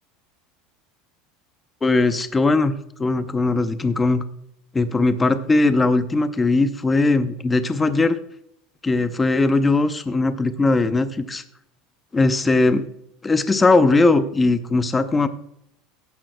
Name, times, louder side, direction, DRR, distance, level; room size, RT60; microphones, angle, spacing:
voice 1, 1.8-2.7 3.0-4.2 4.7-8.2 8.8-11.4 12.1-12.8 13.2-15.3, left 3 dB, 15° left, 10 dB, 0.6 m, -19 dB
14.0 x 10.5 x 2.2 m, 0.72 s
supercardioid pair, 140°, 0 cm